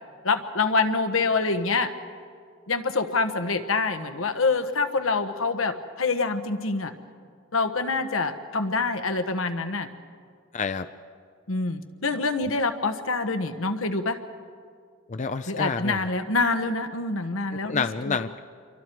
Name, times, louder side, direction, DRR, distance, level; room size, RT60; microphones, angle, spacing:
voice 1, 0.2-1.9 2.7-6.9 7.5-9.9 11.5-14.2 15.5-18.2, left 3 dB, 85° left, 8 dB, 1.3 m, -26 dB
voice 2, 10.5-10.9 15.1-16.1 17.7-18.4, left 5 dB, 35° left, 10 dB, 0.5 m, -28 dB
28.0 x 23.5 x 4.6 m, 2.1 s
head